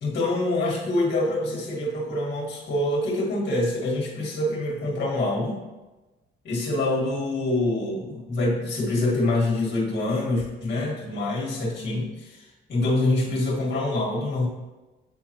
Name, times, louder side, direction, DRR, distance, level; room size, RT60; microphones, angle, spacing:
voice 1, 0.0-5.6 6.4-14.5, left 2 dB, 60° left, -3 dB, 1.8 m, -25 dB
7.9 x 3.9 x 3.0 m, 1.1 s
cardioid pair, 90°, 20 cm